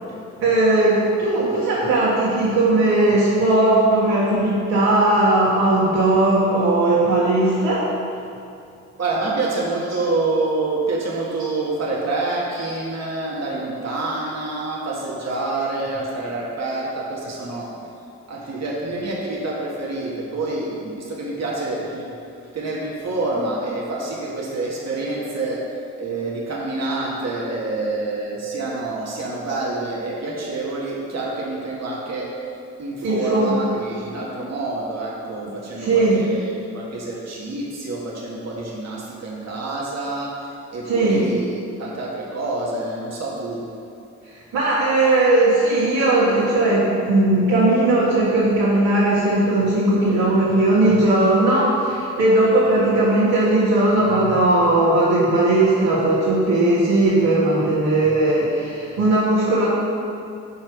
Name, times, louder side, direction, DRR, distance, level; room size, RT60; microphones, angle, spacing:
voice 1, 0.4-7.9 12.6-12.7 29.5-29.6 33.0-33.6 35.4-35.5 35.8-36.2 40.8-41.2 44.5-59.6, right 2 dB, 70° right, -10 dB, 1.7 m, -18 dB
voice 2, 9.0-17.8 18.3-22.1 22.5-25.6 26.0-32.3 32.8-43.6, right 2 dB, 45° right, -4 dB, 1.6 m, -27 dB
5.5 x 4.4 x 6.3 m, 2.5 s
hypercardioid pair, 40°, 36 cm